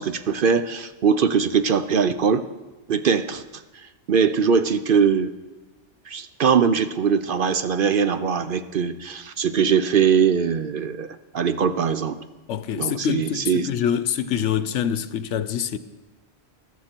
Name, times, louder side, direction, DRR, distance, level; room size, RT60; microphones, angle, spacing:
voice 1, 0.0-2.4 2.9-3.4 4.1-5.3 6.1-12.2 12.7-13.7, right 6 dB, 55° right, 0.7 m, -21 dB
voice 2, 12.5-15.8, left 8 dB, 75° left, 1.0 m, -25 dB
20.5 x 14.0 x 4.5 m
omnidirectional pair, 1.2 m